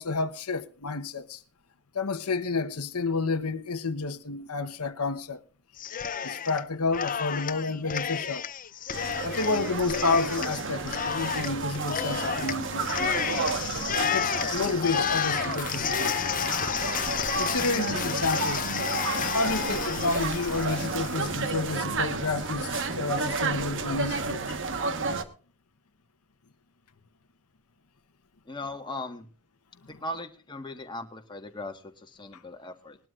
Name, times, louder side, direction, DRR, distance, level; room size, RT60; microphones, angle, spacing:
voice 1, 0.0-1.4 1.9-5.4 6.2-8.5 9.2-13.3 14.1-16.1 17.4-18.7 19.3-24.6 29.8-30.0, left 3 dB, 90° left, 1.0 m, -30 dB
Cheering, 5.8-6.6 6.9-21.4, left 8 dB, 40° left, 0.6 m, -31 dB
sound 1, 8.9-25.2, right 3 dB, 60° right, 1.4 m, -31 dB
voice 2, 28.5-29.3 29.9-33.0, left 2 dB, 20° left, 1.5 m, -38 dB
20.5 x 12.0 x 2.5 m
head